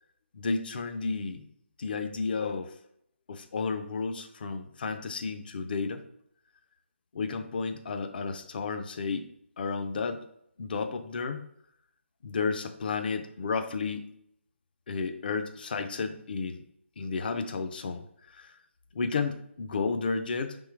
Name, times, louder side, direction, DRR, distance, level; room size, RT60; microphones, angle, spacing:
voice 1, 0.3-1.4 1.8-2.8 3.3-6.0 7.1-9.3 9.6-10.2 10.6-11.4 12.2-14.1 14.9-16.6 17.0-18.6 18.9-20.6, left 4 dB, 45° left, 8 dB, 0.5 m, -32 dB
3.6 x 3.2 x 4.6 m, 0.72 s
figure-of-eight pair, 160°, 7 cm